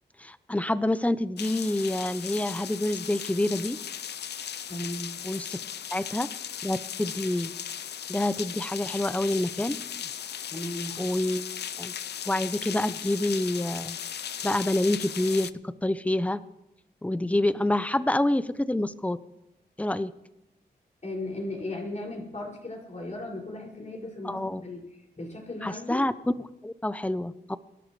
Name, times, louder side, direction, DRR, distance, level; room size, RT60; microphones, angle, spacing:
voice 1, 0.2-3.8 5.2-5.6 5.9-6.3 6.6-7.5 8.1-10.1 11.0-11.4 11.8-11.9 12.3-14.0 14.4-16.4 17.0-19.2 19.8-20.1 24.2-24.6 25.6-26.3 26.6-27.6, left 1 dB, 10° left, 15 dB, 0.7 m, -27 dB
sound 1, 1.4-15.5, left 9 dB, 75° left, 0.5 m, -37 dB
voice 2, 4.7-5.1 10.5-11.0 21.0-24.8 25.2-26.0, left 1 dB, 45° left, -2 dB, 5.9 m, -36 dB
25.0 x 11.5 x 3.2 m, 0.92 s
cardioid pair, 65°, 17 cm